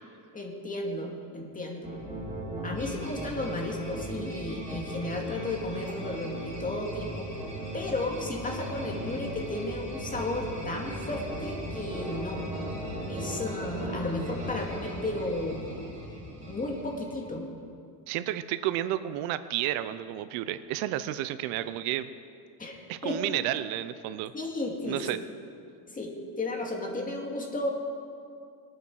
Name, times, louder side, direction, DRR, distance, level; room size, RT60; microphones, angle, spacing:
voice 1, 0.3-1.9 2.6-7.3 7.7-12.4 13.1-15.6 16.5-17.5 22.6-23.2 24.3-25.0 25.9-27.7, left 2 dB, 15° left, 0 dB, 2.4 m, -33 dB
sound 1, 1.8-17.3, right 1 dB, 15° right, 3.7 m, -37 dB
voice 2, 18.1-22.1 22.9-24.3 24.8-25.2, right 13 dB, 80° right, 13 dB, 0.8 m, -31 dB
21.5 x 9.0 x 6.3 m, 2.3 s
cardioid pair, 140°, 47 cm